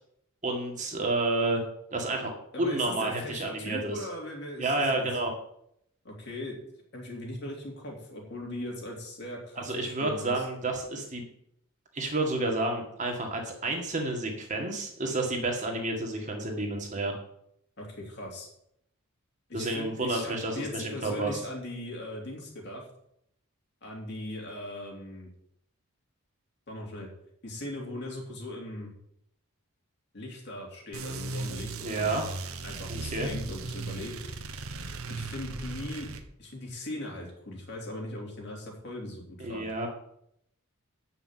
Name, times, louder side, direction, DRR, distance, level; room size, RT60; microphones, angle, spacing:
voice 1, 0.4-1.6 1.9-2.3 2.6-4.1 4.6-5.3 9.6-11.3 11.9-17.1 19.5-21.4 31.8-32.2 32.9-33.3 39.4-39.9, right 2 dB, 35° right, 1 dB, 2.0 m, -30 dB
voice 2, 2.5-5.1 6.0-6.6 6.9-10.4 17.8-18.5 19.5-22.9 23.8-25.3 26.7-27.1 27.4-28.9 30.1-32.3 32.6-34.4 35.1-36.1 36.4-39.7, left 1 dB, 50° left, -1 dB, 3.2 m, -39 dB
sound 1, 30.9-36.2, right 3 dB, 70° right, 1.1 m, -37 dB
9.2 x 5.9 x 7.6 m, 0.74 s
head